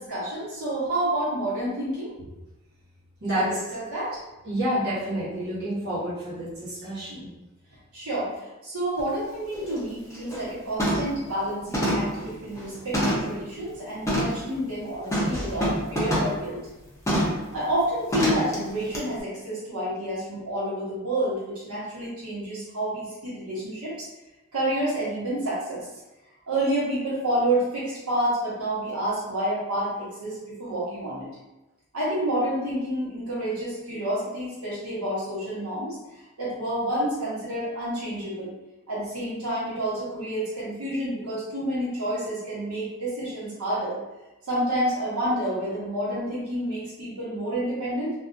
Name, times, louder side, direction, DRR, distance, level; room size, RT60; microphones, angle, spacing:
voice 1, 0.0-2.1 3.3-4.2 7.1-7.2 7.9-16.6 17.5-24.1 24.5-25.9 26.5-31.3 31.9-35.9 36.4-38.5 38.9-44.0 44.5-48.1, right 1 dB, 80° right, -9 dB, 1.1 m, -29 dB
voice 2, 4.4-7.3, right 1 dB, 50° right, -11 dB, 1.2 m, -29 dB
sound 1, 9.0-9.1 9.5-9.8 10.1-10.5 10.8-11.2 11.7-13.4 14.1-14.4 15.1-16.4 17.1-17.4 18.1-18.5 18.9-19.0, equal, 15° left, 0.5 m, -26 dB
2.6 x 2.3 x 2.5 m, 1.0 s
head